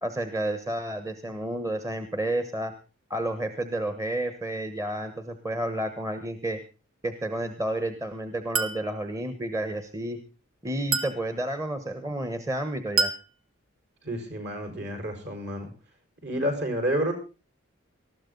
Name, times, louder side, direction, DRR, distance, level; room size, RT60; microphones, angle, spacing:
voice 1, 0.0-2.7 3.1-6.6 7.0-10.2 10.6-13.1, right 1 dB, 15° right, 9 dB, 1.2 m, -31 dB
Chink clink, 8.6-8.9 10.9-11.3 13.0-13.3, right 5 dB, 90° right, 1.6 m, -26 dB
voice 2, 14.0-15.7 16.2-17.1, equal, 55° right, 5 dB, 5.4 m, -29 dB
19.5 x 14.0 x 3.9 m, 0.32 s
head